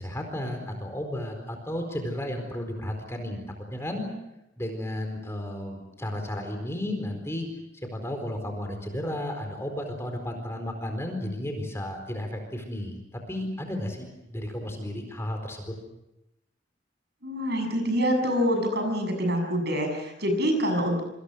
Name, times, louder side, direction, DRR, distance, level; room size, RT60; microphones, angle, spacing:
voice 1, 0.0-3.4 3.7-4.0 4.6-7.5 7.9-15.7, left 1 dB, 15° left, 4 dB, 4.3 m, -33 dB
voice 2, 17.2-21.0, equal, 55° right, 5 dB, 7.0 m, -26 dB
27.5 x 25.5 x 6.4 m, 0.90 s
head